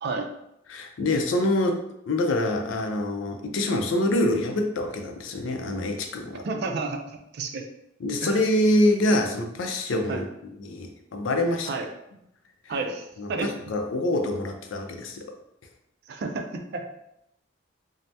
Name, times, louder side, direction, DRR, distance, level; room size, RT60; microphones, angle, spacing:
voice 1, 0.7-6.5 8.0-11.7 13.2-15.3, left 1 dB, 85° left, 4 dB, 0.4 m, -25 dB
voice 2, 6.4-7.0 7.3-7.6 8.2-8.4 10.1-10.2 11.7-11.9 12.7-13.5 16.1-16.8, right 3 dB, 55° right, 4 dB, 0.4 m, -30 dB
2.7 x 2.0 x 3.3 m, 0.80 s
head